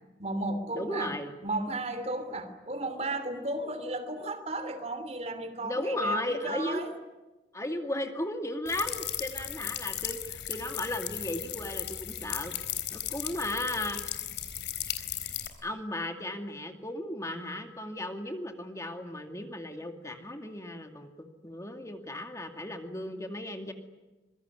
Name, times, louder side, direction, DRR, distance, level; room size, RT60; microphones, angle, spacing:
voice 1, 0.2-1.2 1.4-6.9, right 2 dB, 35° right, 10 dB, 2.9 m, -34 dB
voice 2, 0.7-1.3 5.6-6.8 7.5-12.5 12.9-14.0 15.6-23.7, left 1 dB, 15° left, 5 dB, 2.3 m, -35 dB
sound 1, 8.7-15.5, left 11 dB, 75° left, 3.9 m, -36 dB
26.0 x 23.0 x 9.7 m, 1.1 s
head